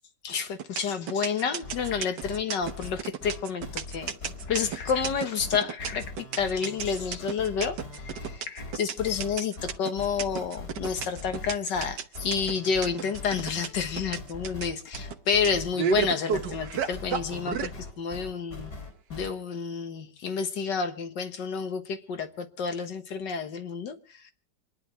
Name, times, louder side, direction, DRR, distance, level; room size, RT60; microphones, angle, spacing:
voice 1, 0.2-4.1 4.5-18.7 19.1-24.3, left 6 dB, 85° left, 2.1 m, -30 dB
sound 1, 0.6-17.7, right 7 dB, 80° right, 1.6 m, -32 dB
sound 2, 1.6-19.3, left 2 dB, 65° left, 4.2 m, -41 dB
26.5 x 10.5 x 4.6 m
omnidirectional pair, 1.8 m